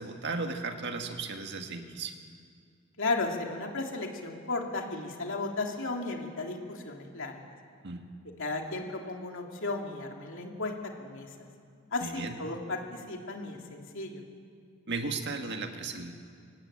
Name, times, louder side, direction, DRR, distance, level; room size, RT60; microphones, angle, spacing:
voice 1, 0.0-2.1 7.8-8.1 12.0-12.4 14.9-16.1, right 3 dB, 55° right, 5 dB, 1.8 m, -35 dB
voice 2, 3.0-7.4 8.4-10.7 11.0-11.3 11.9-14.2, left 3 dB, 60° left, 2 dB, 2.8 m, -34 dB
25.0 x 18.5 x 8.8 m, 2.2 s
head